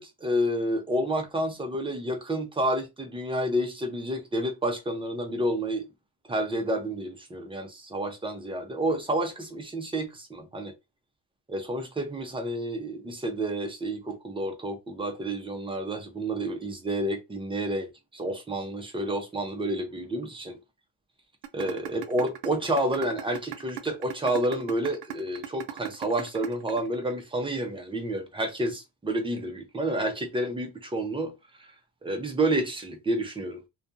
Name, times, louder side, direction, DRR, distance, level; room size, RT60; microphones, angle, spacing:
voice 1, 0.0-5.8 6.3-10.7 11.5-20.6 21.5-31.3 32.0-33.6, right 1 dB, 10° right, 0.6 m, -29 dB
sound 1, 21.4-27.4, right 13 dB, 60° right, 0.6 m, -37 dB
2.5 x 2.3 x 2.5 m
cardioid pair, 100°, 45 cm